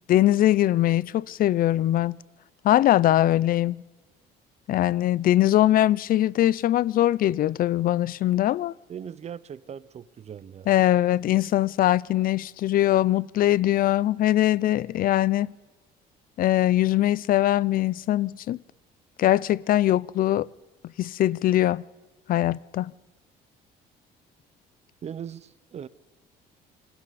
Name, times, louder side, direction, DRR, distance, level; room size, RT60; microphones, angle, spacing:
voice 1, 0.1-2.2 2.6-3.8 4.7-8.7 10.7-15.5 16.4-18.6 19.2-20.5 21.0-21.8 22.3-22.9, left 13 dB, 55° left, 0.5 m, -22 dB
voice 2, 8.9-10.7 25.0-25.9, right 8 dB, 40° right, 0.8 m, -39 dB
29.0 x 21.5 x 4.2 m
cardioid pair, 110°, 17 cm